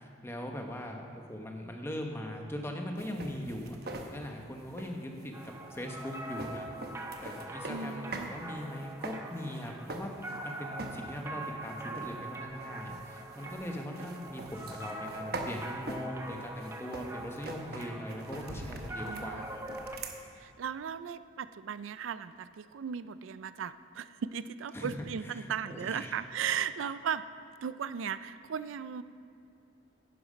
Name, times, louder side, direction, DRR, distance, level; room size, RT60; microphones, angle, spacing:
voice 1, 0.0-6.7 7.2-10.1 10.4-19.6 24.7-25.0 25.2-26.1, equal, 15° left, 2 dB, 1.0 m, -40 dB
sound 1, 3.0-8.3 8.6-10.5 10.8-11.2 11.6-20.2, right 2 dB, 50° right, 1.0 m, -43 dB
sound 2, 5.3-20.0, right 2 dB, 15° right, 0.7 m, -43 dB
voice 2, 7.7-8.3 19.0-19.4 20.4-27.2 27.6-29.0, right 7 dB, 85° right, 14 dB, 0.4 m, -36 dB
11.0 x 10.0 x 5.1 m, 2.8 s
head